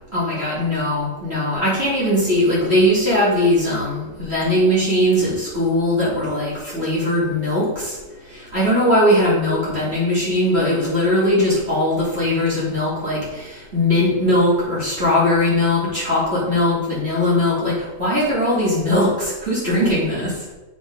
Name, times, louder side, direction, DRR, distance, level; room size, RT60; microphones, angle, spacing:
voice 1, 0.1-7.9 8.5-20.3, left 1 dB, 55° right, -8 dB, 2.8 m, -19 dB
7.3 x 5.8 x 5.0 m, 1.1 s
omnidirectional pair, 1.4 m